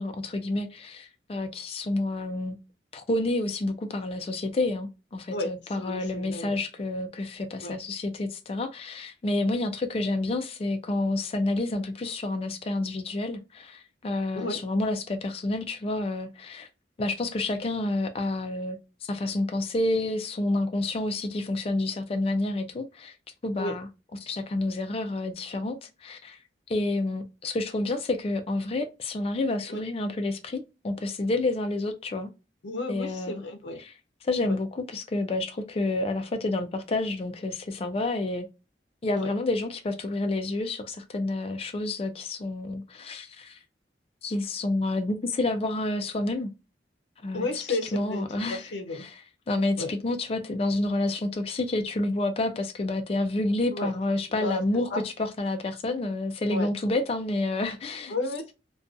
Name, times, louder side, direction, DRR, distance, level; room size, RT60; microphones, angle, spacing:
voice 1, 0.0-2.6 2.9-16.7 17.0-23.1 23.4-23.9 24.2-26.4 26.7-32.3 32.9-33.4 33.8-33.9 34.2-38.5 39.0-43.6 44.2-46.5 47.2-48.6 49.0-49.1 49.5-58.1, left 2 dB, 35° left, 0.3 m, -29 dB
voice 2, 5.3-6.6 7.6-7.7 14.3-14.6 23.6-23.8 29.7-29.8 32.6-33.8 34.4-34.6 39.1-39.3 47.3-49.0 49.8-49.9 53.7-54.0 54.3-54.6 54.9-55.0 56.5-56.7 58.1-58.5, left 2 dB, 85° left, 0.6 m, -33 dB
2.5 x 2.2 x 2.5 m
head